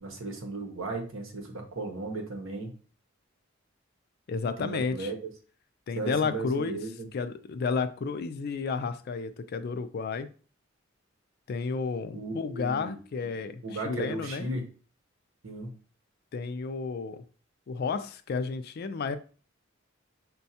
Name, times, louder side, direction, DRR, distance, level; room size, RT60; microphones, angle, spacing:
voice 1, 0.0-2.7 4.6-5.2 6.0-7.1 12.1-13.0 13.4-14.6 15.4-15.7, right 2 dB, 75° right, 0.9 m, -36 dB
voice 2, 4.3-5.1 5.9-6.9 7.1-10.3 11.5-14.5 16.3-17.2 17.7-19.2, left 4 dB, 50° left, 0.3 m, -32 dB
6.1 x 2.2 x 2.7 m
head